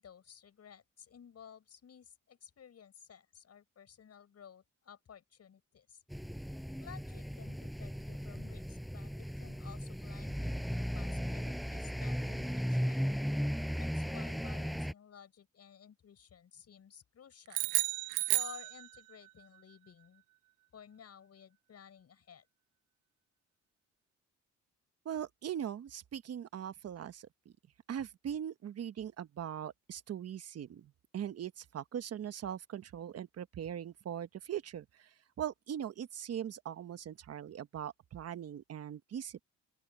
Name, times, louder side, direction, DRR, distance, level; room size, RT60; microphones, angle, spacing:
voice 1, 0.0-6.0 6.8-13.0 13.8-17.7 18.3-20.2 20.7-22.5, left 8 dB, 55° left, 7.1 m, -55 dB
sound 1, 6.1-14.9, equal, ahead, 5.3 m, -36 dB
sound 2, 17.5-19.3, right 18 dB, 85° right, 0.5 m, -32 dB
voice 2, 25.0-27.3 27.9-35.1 35.4-39.4, right 9 dB, 55° right, 1.2 m, -40 dB
open air
cardioid pair, 90°, 30 cm